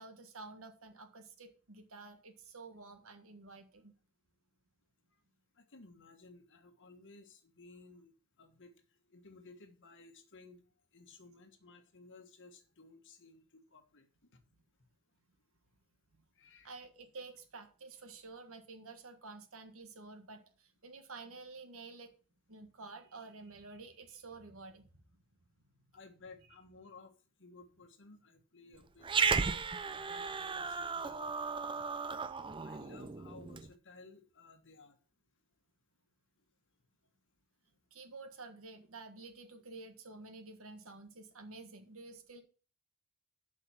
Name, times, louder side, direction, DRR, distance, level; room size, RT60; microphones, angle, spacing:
voice 1, 0.0-3.9 16.6-22.1 22.5-24.9 37.9-42.4, right 3 dB, 65° right, 7 dB, 1.5 m, -50 dB
voice 2, 5.6-8.1 8.4-8.7 9.1-10.6 10.9-14.1 16.3-16.8 25.9-27.1 27.4-29.1 29.8-31.2 32.6-35.0, left 3 dB, 55° left, 6 dB, 1.5 m, -57 dB
Growling, 29.0-33.7, right 5 dB, 20° right, 0.5 m, -35 dB
7.4 x 5.7 x 7.0 m, 0.39 s
head